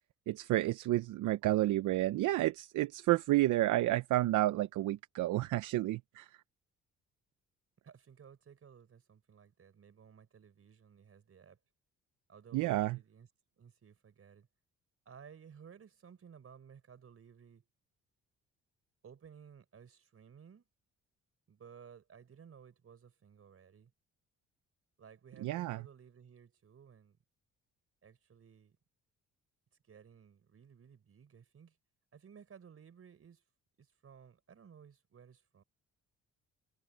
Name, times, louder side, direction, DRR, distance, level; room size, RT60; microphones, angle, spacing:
voice 1, 0.3-6.3 12.5-13.0 25.4-25.8, right 16 dB, 85° right, 0.8 m, -30 dB
voice 2, 7.8-11.6 12.3-13.3 13.6-14.5 15.0-17.7 19.0-20.6 21.5-23.9 25.0-27.2 28.0-28.8 29.8-31.8 32.1-33.4 33.8-35.6, right 7 dB, 50° right, 5.0 m, -57 dB
cardioid pair, 90°, 30 cm